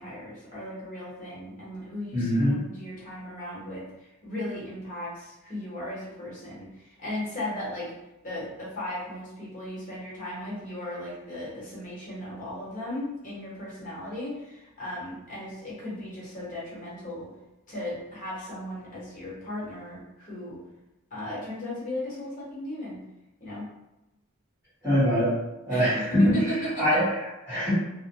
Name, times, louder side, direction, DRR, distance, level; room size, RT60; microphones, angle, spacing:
voice 1, 0.0-2.3 2.6-7.9 8.2-17.3 17.7-20.6 21.1-23.0 23.4-23.7 25.7-27.0, left 1 dB, 40° left, -7 dB, 1.0 m, -36 dB
voice 2, 2.1-2.6 24.8-25.4 25.6-26.4 26.8-27.7, equal, 10° right, -16 dB, 1.1 m, -23 dB
2.1 x 2.0 x 2.8 m, 0.96 s
head